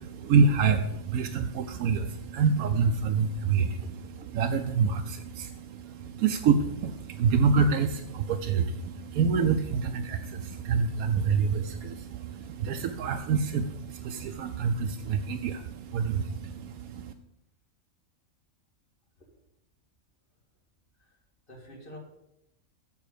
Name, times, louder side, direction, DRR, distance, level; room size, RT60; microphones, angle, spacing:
voice 1, 0.0-17.1, right 5 dB, 85° right, 5 dB, 1.1 m, -27 dB
voice 2, 3.6-4.0 21.5-22.0, equal, 40° left, -1 dB, 2.3 m, -48 dB
7.7 x 7.1 x 6.6 m, 0.83 s
omnidirectional pair, 1.5 m